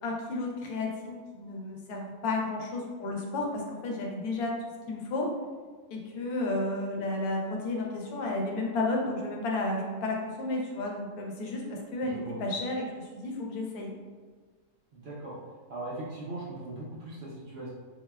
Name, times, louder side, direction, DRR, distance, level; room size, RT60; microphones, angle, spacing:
voice 1, 0.0-4.5 4.9-5.3 5.9-13.9, left 2 dB, 85° left, 0 dB, 1.1 m, -32 dB
voice 2, 12.0-12.4 14.9-15.3 15.7-17.7, right 2 dB, 60° right, -6 dB, 0.7 m, -39 dB
4.0 x 2.1 x 2.2 m, 1.5 s
omnidirectional pair, 1.5 m